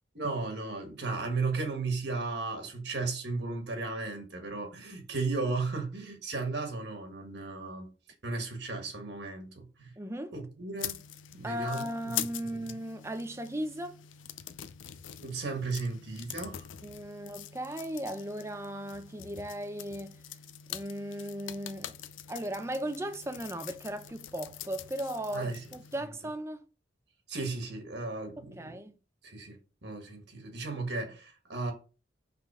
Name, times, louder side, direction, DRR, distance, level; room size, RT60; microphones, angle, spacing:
voice 1, 0.1-7.9 8.2-9.9 10.3-11.0 11.3-12.1 12.5-12.6 15.2-16.6 25.3-25.6 27.3-28.8 29.2-29.6 29.8-31.7, right 3 dB, 60° right, 1.5 m, -35 dB
voice 2, 10.0-10.3 11.4-14.0 16.8-20.2 20.7-21.9 22.3-26.7 28.4-28.9, equal, 15° right, 0.6 m, -37 dB
sound 1, 10.8-26.0, left 11 dB, 85° left, 0.5 m, -44 dB
5.5 x 3.7 x 4.8 m
head